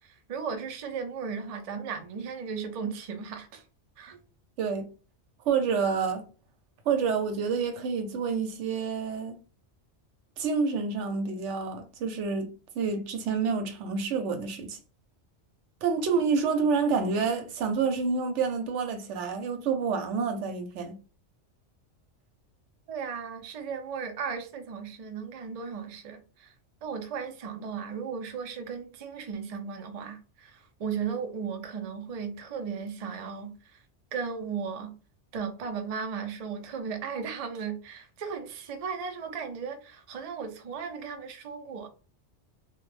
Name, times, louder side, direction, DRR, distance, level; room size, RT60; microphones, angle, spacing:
voice 1, 0.0-3.6 4.0-4.2 22.9-26.5 26.8-33.8 34.1-34.9 35.3-41.9, right 6 dB, 60° right, 0.4 m, -36 dB
voice 2, 5.5-6.2 6.9-9.4 10.4-12.5 12.7-14.8 15.8-21.0, right 5 dB, 85° right, 0.9 m, -28 dB
2.2 x 2.0 x 3.1 m
omnidirectional pair, 1.2 m